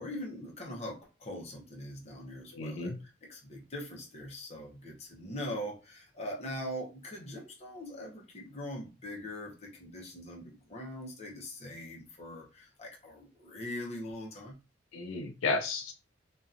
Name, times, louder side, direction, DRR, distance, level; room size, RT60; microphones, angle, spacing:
voice 1, 0.0-14.6, left 1 dB, 30° left, -1 dB, 0.7 m, -42 dB
voice 2, 2.5-3.0 14.9-15.9, left 3 dB, 80° left, 5 dB, 0.4 m, -33 dB
2.7 x 2.2 x 2.4 m, 0.30 s
head